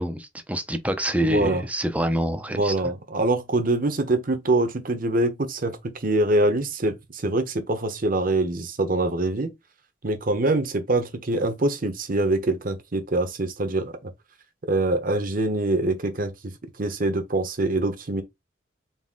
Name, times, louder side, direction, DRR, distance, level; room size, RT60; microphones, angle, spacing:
voice 1, 0.0-2.7, right 1 dB, 10° right, 0.5 m, -26 dB
voice 2, 1.3-1.6 2.5-9.5 10.0-14.1 14.7-16.3 16.8-18.2, right 2 dB, 50° right, 0.8 m, -24 dB
4.1 x 2.5 x 3.6 m
head